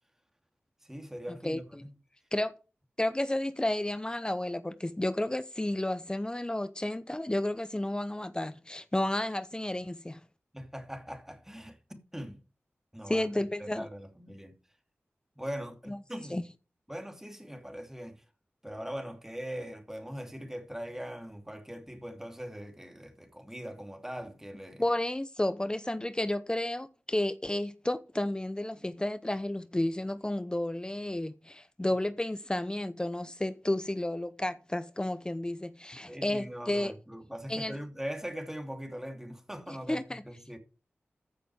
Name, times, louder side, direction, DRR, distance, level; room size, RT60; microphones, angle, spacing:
voice 1, 0.8-1.9 10.5-12.4 12.9-13.3 13.6-14.5 15.4-16.4 16.9-18.2 18.6-24.8 36.1-40.6, equal, 10° right, 2.7 m, -41 dB
voice 2, 3.0-10.2 13.1-13.9 15.9-16.0 16.3-16.4 24.8-36.9 37.5-37.7 39.7-40.2, left 1 dB, 20° left, 0.8 m, -32 dB
14.5 x 6.9 x 4.7 m
cardioid pair, 50°, 4 cm